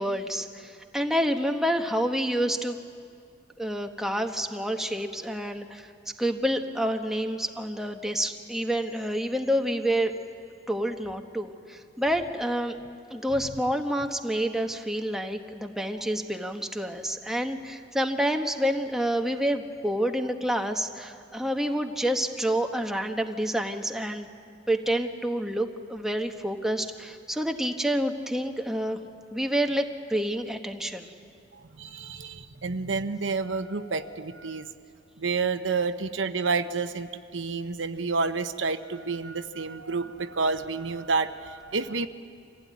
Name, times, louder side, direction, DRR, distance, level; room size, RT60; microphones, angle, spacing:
voice 1, 0.0-2.8 3.6-5.9 6.2-10.1 10.7-12.8 13.1-24.3 24.7-29.0 29.3-31.1, equal, ahead, 4 dB, 1.1 m, -28 dB
voice 2, 31.6-34.7 35.2-42.1, right 4 dB, 80° right, 9 dB, 0.9 m, -29 dB
25.5 x 16.0 x 9.5 m, 2.4 s
head